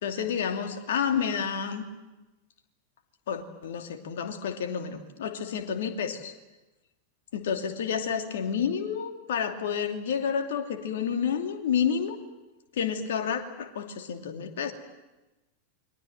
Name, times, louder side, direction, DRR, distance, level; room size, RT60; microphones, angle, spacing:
voice 1, 0.0-1.9 3.3-6.3 7.3-12.2 12.8-14.7, left 7 dB, 60° left, 6 dB, 2.7 m, -30 dB
28.5 x 23.0 x 7.8 m, 1.0 s
figure-of-eight pair, 90°, 0 cm